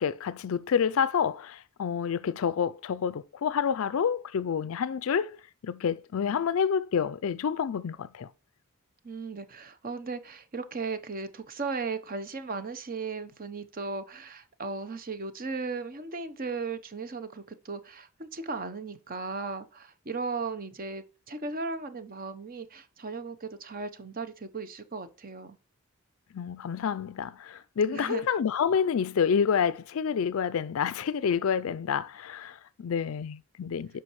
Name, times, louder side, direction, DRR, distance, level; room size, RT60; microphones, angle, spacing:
voice 1, 0.0-5.4 5.6-8.3 26.3-34.0, left 7 dB, 65° left, 0.4 m, -28 dB
voice 2, 9.0-25.6 27.9-28.3, right 4 dB, 40° right, 0.8 m, -36 dB
9.6 x 5.7 x 3.1 m
head